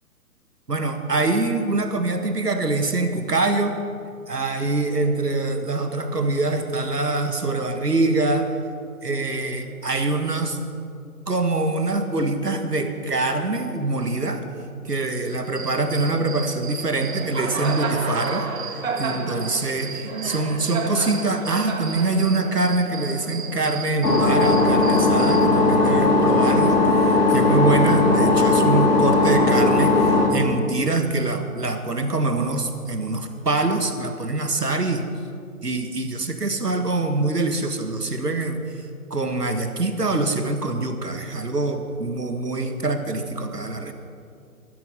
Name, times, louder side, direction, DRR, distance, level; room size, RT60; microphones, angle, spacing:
voice 1, 0.7-3.8 4.3-8.6 9.0-10.6 11.3-14.5 14.9-18.5 19.0-35.1 35.6-38.6 39.1-43.9, right 2 dB, 90° right, 6 dB, 1.7 m, -24 dB
Cricket, 15.4-25.5, right 4 dB, 60° right, 1.8 m, -32 dB
sound 1, 24.0-30.3, left 3 dB, 75° left, 2.9 m, -18 dB
14.5 x 12.5 x 5.6 m, 2.4 s
figure-of-eight pair, 135°, 46 cm